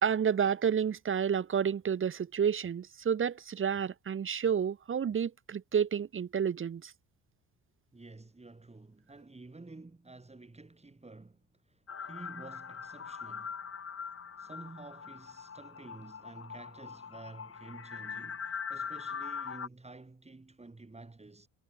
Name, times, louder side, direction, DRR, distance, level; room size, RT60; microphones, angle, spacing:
voice 1, 0.0-6.9, right 7 dB, 35° right, 1.1 m, -30 dB
voice 2, 7.9-13.5 14.4-21.5, right 3 dB, 20° right, 5.8 m, -51 dB
sound 1, 11.9-19.7, left 6 dB, 40° left, 5.4 m, -42 dB
supercardioid pair, 65°, 35 cm